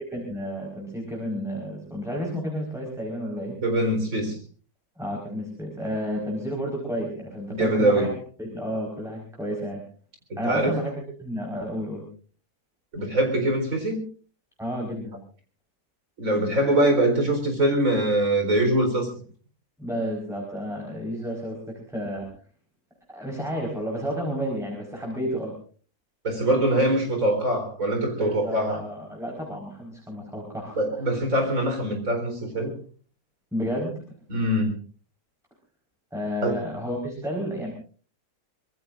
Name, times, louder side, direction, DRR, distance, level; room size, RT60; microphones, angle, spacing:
voice 1, 0.1-3.6 5.0-8.1 8.4-9.8 10.4-12.1 14.6-15.2 19.8-22.3 23.1-25.5 28.2-30.8 33.5-34.0 36.1-37.7, equal, ahead, -2 dB, 4.6 m, -31 dB
voice 2, 3.6-4.4 7.5-8.1 10.3-10.8 12.9-14.0 16.2-19.1 26.2-28.8 30.7-32.7 34.3-34.7 36.4-36.6, right 1 dB, 60° right, 4 dB, 4.6 m, -23 dB
24.5 x 21.5 x 2.6 m, 0.41 s
omnidirectional pair, 1.6 m